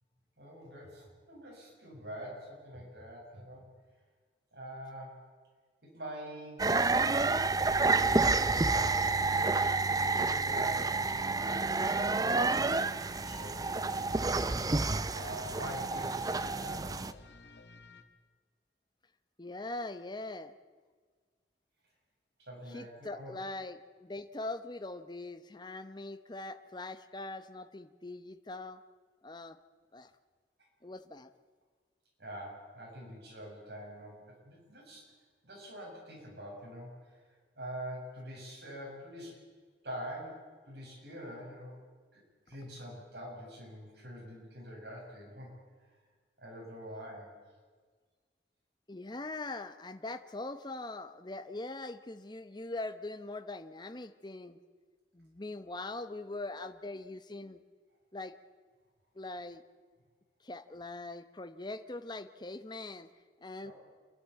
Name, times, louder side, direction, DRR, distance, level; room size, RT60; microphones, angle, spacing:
voice 1, 0.4-3.6 4.5-5.2 5.8-6.7 8.6-14.3 15.1-17.0 22.4-23.3 32.2-35.1 35.4-37.3 37.6-39.4 39.8-41.8 42.1-45.5 46.4-47.3 63.6-63.7, equal, 70° right, -2 dB, 7.3 m, -45 dB
sound 1, 6.6-17.1, right 3 dB, 20° right, 0.5 m, -29 dB
sound 2, 11.9-18.0, left 3 dB, 70° left, 1.6 m, -54 dB
voice 2, 19.4-20.5 22.7-28.8 29.2-29.6 29.9-30.1 30.8-31.3 48.9-54.6 55.1-57.6 58.1-58.3 59.1-59.6 60.4-63.1 63.4-63.7, left 2 dB, 25° left, 10 dB, 0.9 m, -42 dB
28.0 x 11.5 x 8.4 m, 1.5 s
head